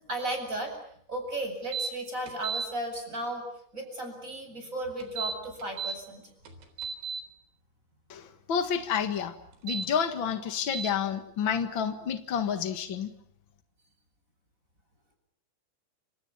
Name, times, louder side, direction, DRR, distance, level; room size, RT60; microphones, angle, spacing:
voice 1, 0.1-0.7 1.1-3.4 3.7-6.3, right 1 dB, 15° right, 4 dB, 8.1 m, -35 dB
sound 1, 1.7-1.9 2.3-2.7 5.0-6.0 6.5-7.2 9.5-9.9 10.7-10.9, right 5 dB, 75° right, 6.0 m, -33 dB
voice 2, 8.1-9.3 9.6-13.1, left 7 dB, 60° left, 8 dB, 1.2 m, -29 dB
29.5 x 27.5 x 7.2 m, 0.64 s
omnidirectional pair, 4.9 m